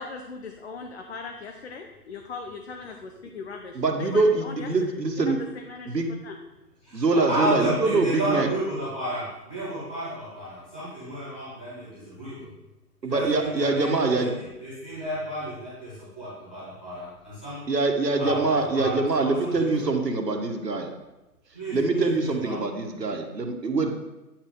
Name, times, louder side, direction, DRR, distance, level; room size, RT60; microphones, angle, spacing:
voice 1, 0.0-4.7 5.5-6.4, left 4 dB, 45° left, 3 dB, 0.8 m, -39 dB
voice 2, 3.7-5.4 5.9-6.1 6.9-8.5 13.0-14.3 17.7-20.9 21.7-23.9, right 3 dB, 90° right, 4 dB, 1.7 m, -24 dB
voice 3, 6.8-12.5 13.0-14.3 14.6-17.7 18.2-19.0 19.2-19.9 21.5-22.6, right 1 dB, 5° left, -13 dB, 0.6 m, -32 dB
9.7 x 6.0 x 3.8 m, 1.0 s
hypercardioid pair, 155°, 48 cm